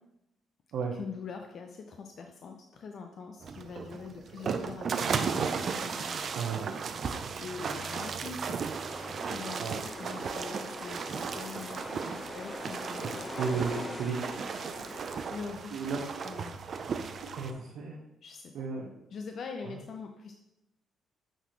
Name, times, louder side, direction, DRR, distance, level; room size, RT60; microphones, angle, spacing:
voice 1, 1.0-6.2 7.4-8.6 9.3-9.7 10.0-11.8 12.1-13.3 15.3-15.8 16.2-16.6 18.2-18.5 19.1-20.3, left 5 dB, 60° left, 4 dB, 0.6 m, -43 dB
sound 1, 3.4-17.5, right 6 dB, 50° right, 0.5 m, -35 dB
voice 2, 6.3-6.8 9.6-9.8 13.4-14.9 15.7-16.1 17.3-18.0 18.5-18.9 19.6-19.8, right 5 dB, 80° right, -1 dB, 0.9 m, -34 dB
sound 2, 8.9-15.2, left 1 dB, 25° left, 1.1 m, -43 dB
8.9 x 4.1 x 3.1 m, 0.84 s
cardioid pair, 90°, 0 cm